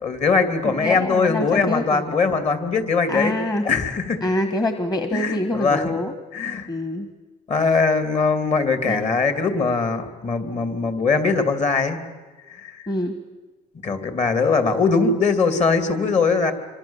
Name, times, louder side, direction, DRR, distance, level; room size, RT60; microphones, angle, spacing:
voice 1, 0.0-3.3 3.6-4.2 5.1-5.9 6.3-6.7 7.5-12.0 12.5-12.8 13.8-16.5, left 4 dB, 40° left, 8 dB, 3.0 m, -21 dB
voice 2, 0.6-2.0 3.1-3.6 4.2-6.1 6.7-7.1 8.9-9.0 12.9-13.2, left 1 dB, 25° left, 7 dB, 1.6 m, -25 dB
25.5 x 25.0 x 7.4 m, 1.3 s
cardioid pair, 110°, 17 cm